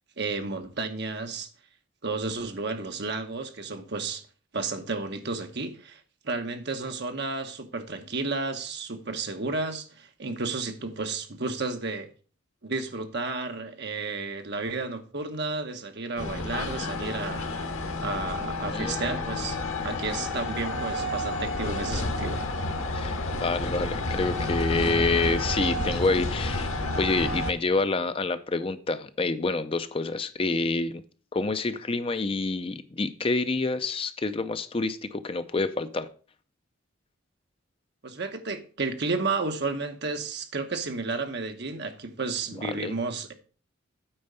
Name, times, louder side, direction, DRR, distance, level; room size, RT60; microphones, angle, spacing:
voice 1, 0.2-1.5 2.0-4.2 4.5-6.0 6.2-12.1 12.6-17.4 18.0-19.6 19.8-22.4 38.0-43.3, right 3 dB, 55° right, 1.1 m, -32 dB
sound 1, 16.2-27.5, left 2 dB, 85° left, 1.3 m, -30 dB
voice 2, 18.7-19.2 22.9-31.0 31.3-36.1 42.7-42.9, left 3 dB, 25° left, 0.4 m, -28 dB
8.8 x 4.5 x 6.6 m
head